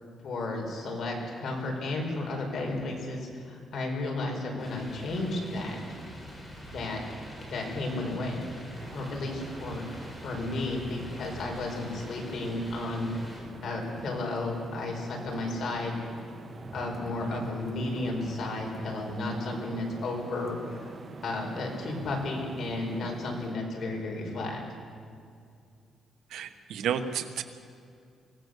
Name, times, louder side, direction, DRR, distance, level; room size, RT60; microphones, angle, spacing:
voice 1, 0.2-5.8 6.7-7.0 7.4-8.4 8.9-13.1 13.3-16.3 16.7-20.9 21.2-24.6, left 2 dB, 50° left, 1 dB, 5.0 m, -33 dB
sound 1, 4.6-13.4, equal, 15° left, 5.4 m, -45 dB
sound 2, 8.8-23.6, right 4 dB, 35° right, 1.4 m, -45 dB
voice 2, 26.3-27.4, right 8 dB, 80° right, 8 dB, 1.2 m, -32 dB
24.0 x 17.0 x 6.7 m, 2.3 s
cardioid pair, 145°, 0 cm